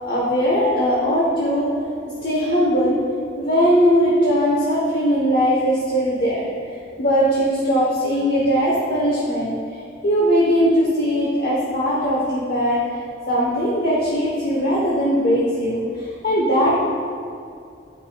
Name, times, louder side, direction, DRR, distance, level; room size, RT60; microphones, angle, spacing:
voice 1, 0.0-1.7 2.2-3.0 3.4-6.5 7.0-9.5 10.0-12.8 13.3-16.8, equal, 55° left, -6 dB, 0.9 m, -19 dB
8.8 x 5.5 x 2.2 m, 2.4 s
head